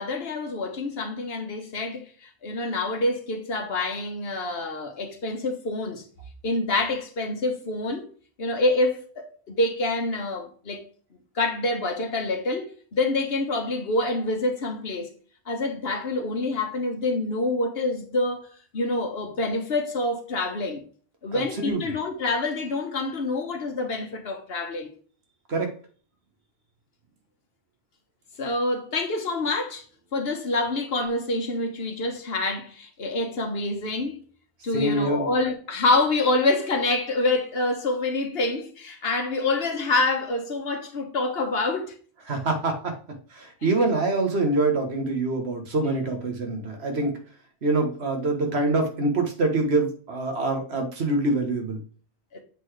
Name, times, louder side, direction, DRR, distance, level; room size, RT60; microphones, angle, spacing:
voice 1, 0.0-6.0 6.4-8.1 8.4-10.8 11.3-15.1 15.5-18.5 18.7-20.8 21.2-24.9 28.4-29.8 30.1-34.2 34.6-41.9 52.3-52.4, left 2 dB, 70° left, 1.4 m, -26 dB
voice 2, 21.3-21.8 25.5-25.7 34.7-35.3 42.3-42.9 43.3-47.2 47.6-51.8, right 2 dB, 85° right, 1.6 m, -25 dB
7.4 x 4.0 x 3.2 m
omnidirectional pair, 1.1 m